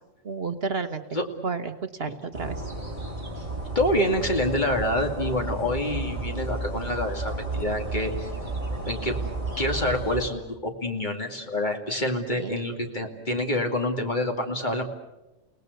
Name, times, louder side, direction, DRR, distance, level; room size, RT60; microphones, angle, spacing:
voice 1, 0.2-2.6 12.3-12.6, right 4 dB, 55° right, 9 dB, 1.4 m, -32 dB
sound 1, 2.3-10.3, right 2 dB, 25° right, 4.6 m, -32 dB
voice 2, 3.7-8.3 8.9-9.2 9.6-14.8, left 1 dB, 40° left, 3 dB, 2.6 m, -27 dB
29.5 x 19.0 x 8.1 m, 1.0 s
omnidirectional pair, 1.3 m